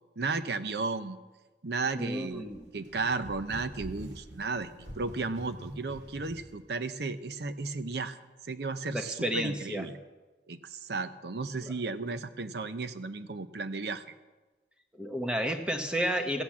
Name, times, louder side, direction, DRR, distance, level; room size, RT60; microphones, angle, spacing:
voice 1, 0.2-1.2 1.6-8.2 8.4-10.0 10.5-14.0, right 3 dB, 65° right, 12 dB, 0.7 m, -34 dB
voice 2, 1.9-2.7 8.9-9.8 11.6-11.7 15.0-16.4, equal, 5° right, 5 dB, 1.0 m, -31 dB
sound 1, 2.2-6.5, equal, 90° right, 2.7 m, -46 dB
14.5 x 8.4 x 7.3 m, 1.2 s
head